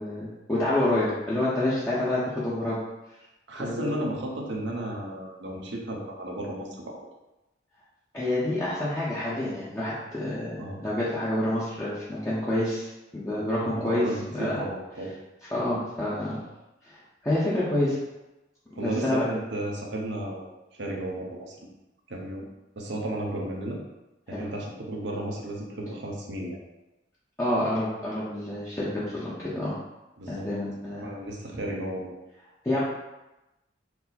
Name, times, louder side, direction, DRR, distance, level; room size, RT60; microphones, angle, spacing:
voice 1, 0.0-2.8 3.6-4.1 8.1-14.6 15.5-16.4 16.8-18.0 18.8-19.3 24.3-24.4 27.4-29.8 30.3-31.1 32.6-32.8, left 1 dB, 15° left, -10 dB, 0.7 m, -28 dB
voice 2, 3.5-7.0 10.6-10.8 13.6-15.1 18.8-21.7 22.1-22.4 22.8-23.8 24.3-26.6 30.2-30.5 30.8-32.1, right 1 dB, 65° right, -1 dB, 0.8 m, -33 dB
4.5 x 2.1 x 4.1 m, 0.98 s
head